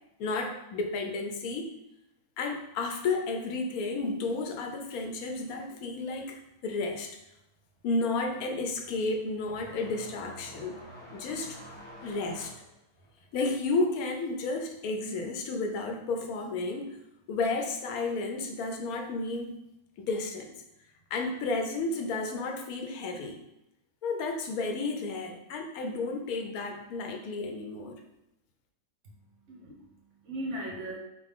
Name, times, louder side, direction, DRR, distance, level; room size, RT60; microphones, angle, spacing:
voice 1, 0.2-1.7 2.4-7.2 7.8-10.8 11.1-11.6 12.0-12.5 13.3-17.0 17.3-19.6 20.0-20.5 21.1-23.4 24.0-28.0, left 3 dB, 85° left, 3 dB, 1.1 m, -32 dB
sound 1, 7.1-7.3 7.6-15.9 16.2-17.2 18.2-18.3 19.1-19.2 21.0-21.1, equal, 20° left, 1.0 m, -50 dB
voice 2, 29.1-31.0, right 1 dB, 55° right, -3 dB, 1.4 m, -39 dB
5.5 x 2.2 x 3.6 m, 0.86 s
omnidirectional pair, 1.5 m